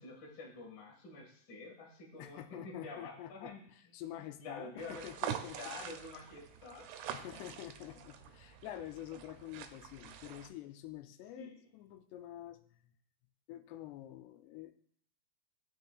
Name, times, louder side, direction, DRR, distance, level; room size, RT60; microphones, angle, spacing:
voice 1, 0.0-3.9 4.2-5.1 5.5-7.1 8.7-8.8 11.3-11.6, left 3 dB, 45° left, -2 dB, 1.6 m, -48 dB
voice 2, 2.2-3.5 3.9-5.6 7.1-12.6 13.5-14.7, left 12 dB, 90° left, 8 dB, 2.7 m, -47 dB
sound 1, 4.8-10.5, right 9 dB, 85° right, 2.7 m, -45 dB
15.0 x 6.0 x 2.4 m, 0.64 s
omnidirectional pair, 4.7 m